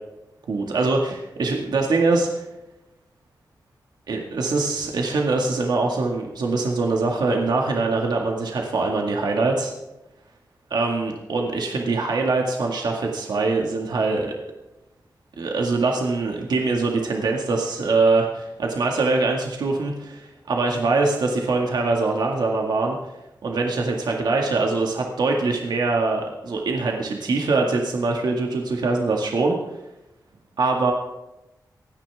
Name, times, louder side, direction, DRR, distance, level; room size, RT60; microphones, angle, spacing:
voice 1, 0.5-2.4 4.1-9.7 10.7-14.3 15.4-23.0 23.4-29.6 30.6-30.9, right 3 dB, 80° right, 1 dB, 2.0 m, -23 dB
27.0 x 10.5 x 3.6 m, 0.97 s
wide cardioid pair, 140°, 7 cm